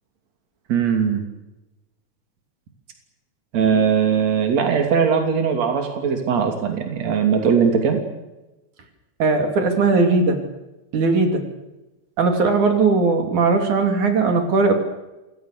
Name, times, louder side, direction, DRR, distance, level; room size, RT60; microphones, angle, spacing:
voice 1, 0.7-1.2 3.5-8.0, right 6 dB, 60° right, 4 dB, 4.2 m, -20 dB
voice 2, 9.2-10.4 10.9-11.4 12.2-14.7, right 3 dB, 80° right, 5 dB, 4.5 m, -18 dB
27.5 x 21.5 x 6.8 m, 1.0 s
omnidirectional pair, 3.4 m